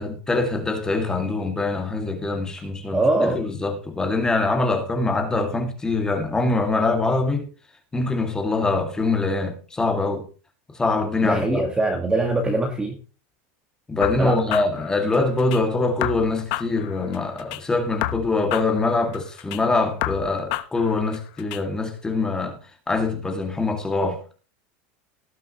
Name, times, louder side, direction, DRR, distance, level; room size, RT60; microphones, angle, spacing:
voice 1, 0.0-7.5 7.9-10.2 10.7-11.7 13.9-22.6 22.9-24.3, left 3 dB, 10° left, 2.3 m, -24 dB
voice 2, 2.9-3.4 11.2-13.0 14.2-14.6, right 2 dB, 10° right, 2.0 m, -23 dB
sound 1, 14.0-15.6 16.0-17.6 18.0-19.6 20.0-21.6, left 16 dB, 60° left, 1.1 m, -30 dB
18.5 x 7.5 x 3.1 m
supercardioid pair, 150°, 6 cm